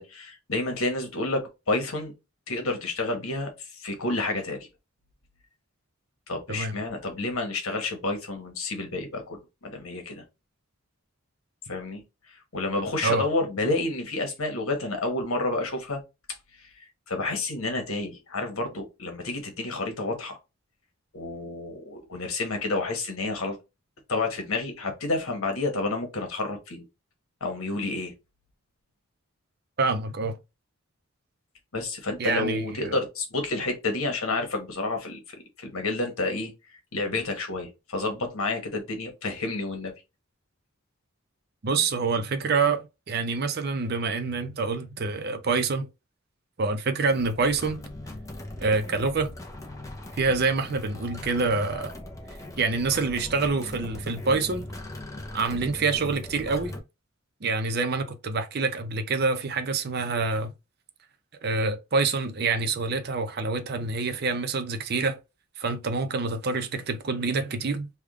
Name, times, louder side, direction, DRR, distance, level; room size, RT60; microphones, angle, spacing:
voice 1, 0.0-2.1 2.5-4.7 6.3-10.2 11.7-16.0 16.6-20.4 21.1-23.6 24.1-26.8 27.4-28.1 31.7-36.5 36.9-39.9, left 2 dB, 80° left, 1.2 m, -30 dB
voice 2, 29.8-30.4 32.2-32.9 41.6-45.9 46.6-47.8 48.6-49.3 50.2-51.9 52.6-54.6 55.3-56.7 57.4-60.5 61.4-65.2 65.6-67.9, right 4 dB, 50° right, 0.5 m, -26 dB
sound 1, 47.1-56.8, left 1 dB, 15° left, 0.6 m, -40 dB
3.5 x 2.3 x 3.5 m
head